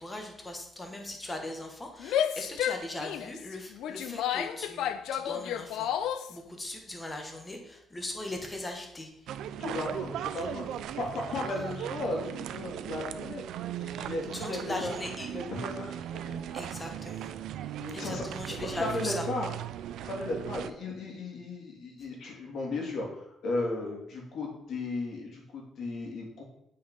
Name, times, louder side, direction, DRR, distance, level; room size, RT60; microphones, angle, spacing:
voice 1, 0.0-9.1 14.3-15.3 16.5-17.3 17.9-19.3, left 1 dB, 15° left, 3 dB, 1.4 m, -39 dB
Female speech woman speaking / Yell, 2.0-6.3, left 10 dB, 80° left, 0.5 m, -31 dB
sound 1, 9.3-20.7, right 10 dB, 75° right, 0.4 m, -38 dB
voice 2, 9.6-10.7 11.0-13.4 13.8-15.0 15.3-16.4 17.8-18.2 18.5-19.5 20.0-26.4, left 2 dB, 50° left, 0 dB, 2.7 m, -35 dB
9.0 x 5.6 x 5.3 m, 0.79 s
cardioid pair, 175°, 0 cm